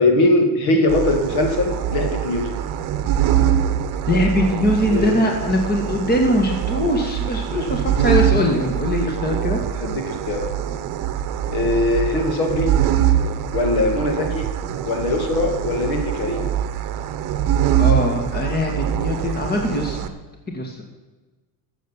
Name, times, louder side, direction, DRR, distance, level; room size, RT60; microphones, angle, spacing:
voice 1, 0.0-2.6 4.9-5.2 9.8-10.5 11.5-12.7 13.5-14.5 14.8-16.5, left 2 dB, 55° left, 3 dB, 2.6 m, -21 dB
sound 1, 0.9-20.1, right 10 dB, 45° right, 1.1 m, -23 dB
voice 2, 4.1-9.6 17.8-20.1 20.5-20.8, left 1 dB, 20° left, 2 dB, 2.1 m, -21 dB
13.0 x 7.8 x 7.3 m, 1.2 s
supercardioid pair, 120°, 46 cm